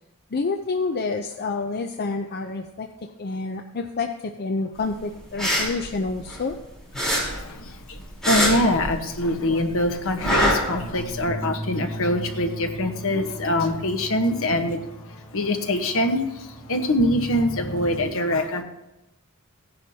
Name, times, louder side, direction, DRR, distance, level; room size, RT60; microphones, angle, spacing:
voice 1, 0.3-2.9 3.2-6.6, left 3 dB, 45° left, 5 dB, 0.6 m, -28 dB
sound 1, 5.2-6.6 6.9-9.3 9.6-11.2, equal, 5° left, 3.8 m, -24 dB
voice 2, 7.2-18.6, left 1 dB, 65° left, 5 dB, 1.2 m, -24 dB
sound 2, 10.7-18.0, equal, 30° left, 3.9 m, -37 dB
16.5 x 10.5 x 2.8 m, 0.93 s
head